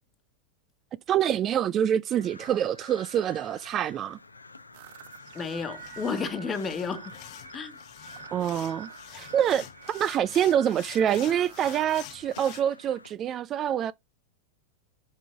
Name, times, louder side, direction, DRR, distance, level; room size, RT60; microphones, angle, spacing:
voice 1, 1.1-4.2 8.3-13.9, right 10 dB, 30° right, 0.3 m, -26 dB
Crow, 2.1-13.1, left 3 dB, 80° left, 0.7 m, -49 dB
sound 1, 4.7-12.1, right 9 dB, 55° right, 1.0 m, -48 dB
sound 2, 5.0-12.6, left 18 dB, 40° left, 0.6 m, -48 dB
voice 2, 5.3-7.1 7.5-7.8, left 5 dB, 20° left, 1.2 m, -32 dB
7.3 x 5.3 x 3.3 m
figure-of-eight pair, 90°, 0 cm